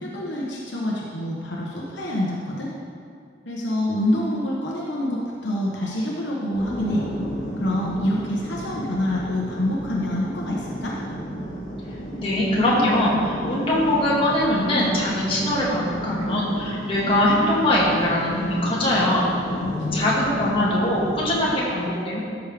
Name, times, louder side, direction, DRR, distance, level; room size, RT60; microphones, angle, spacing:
voice 1, 0.0-2.7 3.4-7.0 7.6-10.9 19.5-20.4, left 1 dB, 70° left, -4 dB, 1.2 m, -26 dB
sound 1, 6.6-21.6, equal, 50° left, 2.0 m, -32 dB
voice 2, 12.2-19.3 19.9-22.2, left 1 dB, 30° left, -6 dB, 2.0 m, -22 dB
13.0 x 6.3 x 3.5 m, 2.3 s
head